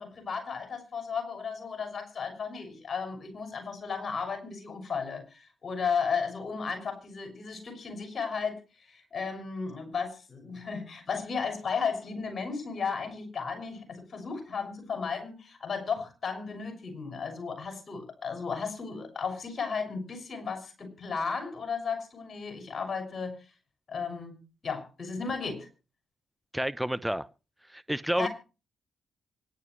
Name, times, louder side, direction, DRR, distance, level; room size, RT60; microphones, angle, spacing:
voice 1, 0.0-23.4 23.9-25.7 28.2-28.3, left 5 dB, 50° left, 6.3 m, -34 dB
voice 2, 26.5-27.3 27.7-28.3, right 1 dB, 5° right, 0.8 m, -29 dB
25.0 x 11.0 x 3.2 m
hypercardioid pair, 45°, 0 cm